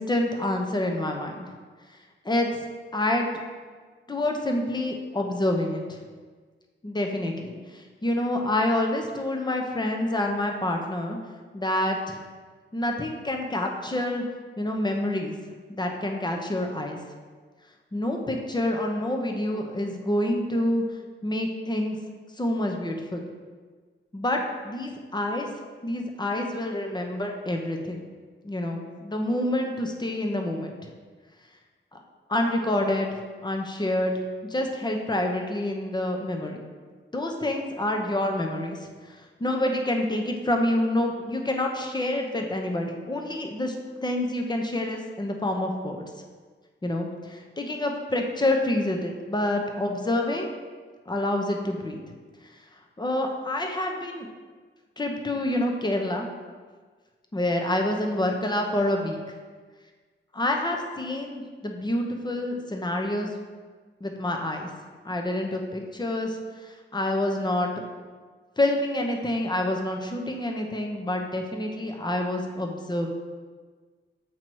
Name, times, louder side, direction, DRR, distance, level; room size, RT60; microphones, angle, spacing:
voice 1, 0.0-1.5 2.2-2.5 2.9-3.4 4.1-6.0 6.8-11.2 11.5-12.2 12.7-14.2 14.6-15.3 15.7-17.0 17.9-20.8 21.2-22.0 22.4-23.3 24.1-25.5 25.8-28.0 28.4-30.8 31.9-32.0 32.3-34.1 34.5-36.6 37.1-43.7 44.0-46.0 46.8-50.5 51.1-52.0 53.0-54.3 55.0-56.3 57.3-59.2 60.3-63.3 64.0-64.7 65.0-67.7 68.6-73.1, left 1 dB, 20° left, 2 dB, 0.7 m, -27 dB
7.6 x 2.8 x 4.6 m, 1.5 s
wide cardioid pair, 75°, 20 cm